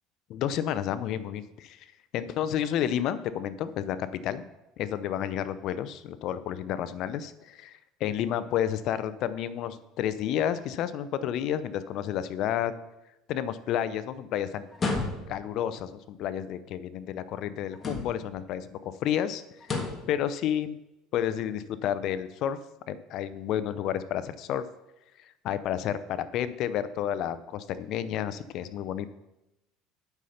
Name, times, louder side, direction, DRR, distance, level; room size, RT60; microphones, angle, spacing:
voice 1, 0.3-4.4 4.8-12.7 13.3-14.7 15.3-19.7 20.1-20.8 21.1-22.6 22.9-24.6 25.4-29.1, left 10 dB, 60° left, 14 dB, 0.5 m, -31 dB
sound 1, 14.7-15.5 17.7-18.4 19.6-20.1, left 3 dB, 30° left, 1.5 m, -32 dB
8.1 x 5.7 x 5.7 m, 0.95 s
supercardioid pair, 115°, 0 cm